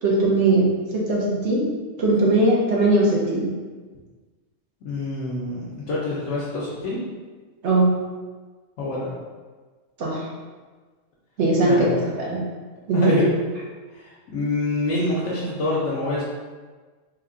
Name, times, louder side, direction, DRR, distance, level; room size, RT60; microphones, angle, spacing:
voice 1, 0.0-0.6 1.1-1.6 2.0-3.5 7.6-7.9 10.0-10.3 11.4-12.4 12.9-13.2, right 2 dB, 65° right, -4 dB, 1.1 m, -19 dB
voice 2, 4.8-7.0 8.8-9.1 11.7-11.9 12.9-13.2 13.9-14.0 14.3-16.2, left 2 dB, 70° left, -7 dB, 1.0 m, -26 dB
3.4 x 2.2 x 3.7 m, 1.4 s
omnidirectional pair, 1.3 m